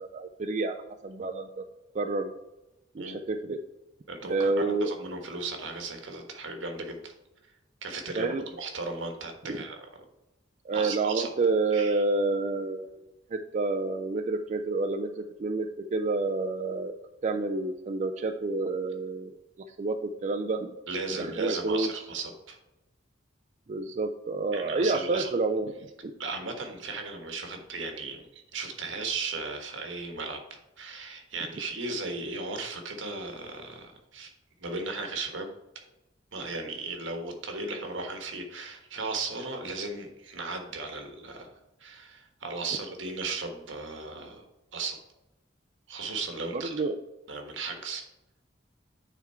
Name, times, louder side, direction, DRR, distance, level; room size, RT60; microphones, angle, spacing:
voice 1, 0.0-1.6 1.9-2.3 2.9-3.6 4.3-4.9 8.2-8.4 9.5-9.6 10.6-17.0 17.2-19.3 19.7-20.7 21.1-21.9 23.7-25.7 26.0-26.1 46.5-47.0, right 3 dB, 40° right, 5 dB, 0.4 m, -29 dB
voice 2, 4.1-7.1 7.8-9.8 10.7-11.3 11.7-12.0 20.9-22.6 24.5-25.3 26.2-34.3 34.6-35.5 36.3-44.5 44.7-45.0 45.9-46.7 47.3-48.0, right 3 dB, 80° right, 4 dB, 1.3 m, -36 dB
9.1 x 3.6 x 4.4 m, 0.99 s
head